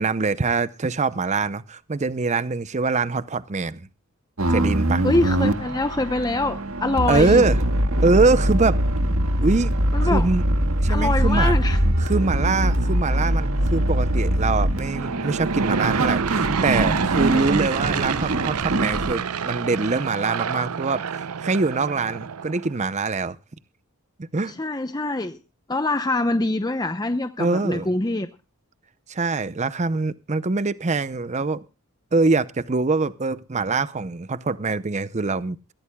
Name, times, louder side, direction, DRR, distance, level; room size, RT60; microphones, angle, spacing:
voice 1, 0.0-3.9 4.5-5.1 7.1-7.6 8.0-8.8 9.4-9.7 10.0-10.4 10.8-11.6 12.0-23.4 24.2-24.5 27.4-27.9 29.1-31.7 32.1-35.6, right 3 dB, 30° right, 0.6 m, -23 dB
sound 1, 4.4-19.1, right 1 dB, 75° right, 1.7 m, -23 dB
voice 2, 5.0-7.4 9.9-10.2 10.9-11.8 17.3-17.6 24.5-25.4 25.7-28.3, left 2 dB, 20° left, 0.7 m, -24 dB
Aircraft / Engine, 14.8-22.8, right 6 dB, 90° right, 0.6 m, -28 dB
22.5 x 16.0 x 2.2 m
head